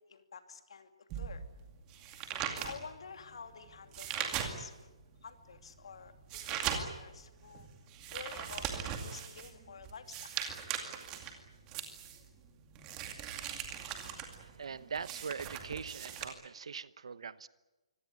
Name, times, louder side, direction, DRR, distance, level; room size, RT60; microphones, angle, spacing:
voice 1, 0.0-1.4 2.6-4.9 5.2-7.7 8.1-8.7 9.0-10.6, left 6 dB, 65° left, 8 dB, 2.8 m, -50 dB
sound 1, 1.1-4.9 5.4-16.2, right 8 dB, 15° right, 2.3 m, -40 dB
voice 2, 14.4-17.5, right 6 dB, 70° right, 17 dB, 1.0 m, -42 dB
25.0 x 17.0 x 9.8 m, 1.1 s
hypercardioid pair, 170°, 3 cm